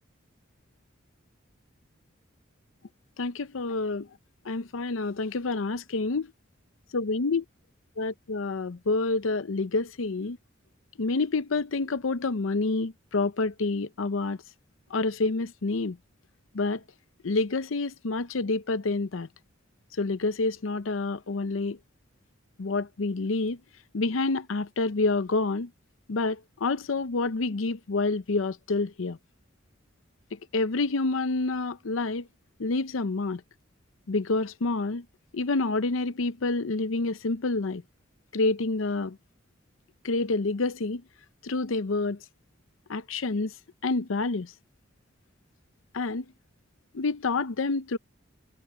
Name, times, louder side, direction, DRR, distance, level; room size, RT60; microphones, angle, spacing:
voice 1, 3.2-4.1 4.5-6.3 6.9-7.4 8.0-10.4 11.0-14.4 14.9-16.0 16.5-16.8 17.2-19.3 20.0-21.8 22.6-23.6 23.9-25.7 26.1-29.2 30.5-32.3 32.6-33.4 34.1-35.0 35.3-37.8 38.3-39.2 40.0-41.0 41.4-42.2 42.9-43.5 43.8-44.5 45.9-46.2 46.9-48.0, left 3 dB, 85° left, 0.7 m, -28 dB
head